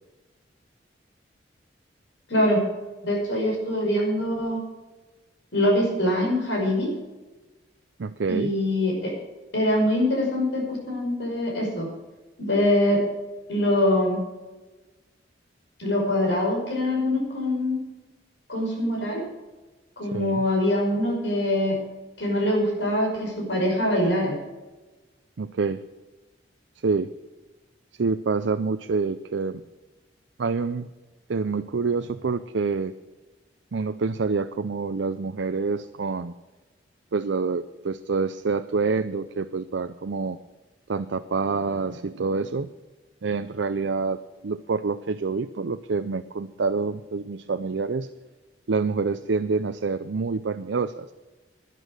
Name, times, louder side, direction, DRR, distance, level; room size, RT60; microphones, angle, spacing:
voice 1, 2.3-2.6 3.0-4.6 5.5-6.9 8.3-9.1 9.5-11.9 12.4-13.0 13.5-14.2 15.8-17.8 18.5-19.2 20.0-21.7 22.2-24.3, left 1 dB, 70° left, 0 dB, 5.6 m, -23 dB
voice 2, 8.0-8.5 20.0-20.4 25.4-25.8 26.8-27.1 28.0-29.6 30.4-30.9 31.3-32.9 33.7-36.3 37.1-40.4 40.9-42.7 43.2-48.1 48.7-51.1, right 4 dB, 70° right, 10 dB, 0.5 m, -27 dB
11.5 x 11.0 x 6.4 m, 1.2 s
head